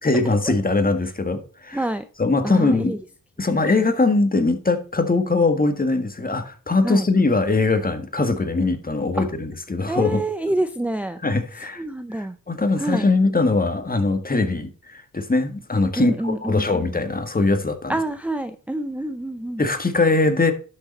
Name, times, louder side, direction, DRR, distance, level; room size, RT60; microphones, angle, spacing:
voice 1, 0.0-1.9 2.2-3.0 3.4-10.2 11.2-11.8 12.1-18.0 19.6-20.5, left 3 dB, 25° left, 1.7 m, -21 dB
voice 2, 1.7-2.0 2.4-3.0 3.7-3.8 6.8-7.1 9.2-9.3 9.9-11.2 11.8-12.4 12.8-13.1 16.0-16.8 17.9-19.6, right 1 dB, 5° right, 0.7 m, -26 dB
11.5 x 6.7 x 4.2 m
cardioid pair, 80°, 35 cm